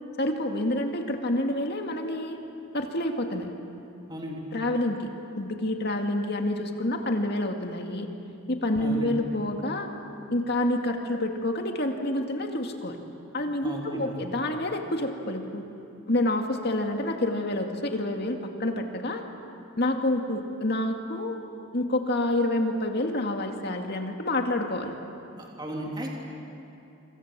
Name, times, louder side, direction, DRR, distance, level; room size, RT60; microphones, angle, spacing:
voice 1, 0.2-2.4 2.7-3.5 4.5-5.1 5.4-8.1 8.5-9.9 10.3-13.0 13.3-15.6 16.1-19.2 19.8-21.4 21.7-25.0, left 1 dB, 50° left, 3 dB, 2.3 m, -28 dB
voice 2, 4.1-4.4 8.8-9.1 13.6-14.2 25.4-26.1, equal, 20° right, -1 dB, 3.2 m, -35 dB
27.0 x 26.5 x 7.6 m, 2.7 s
head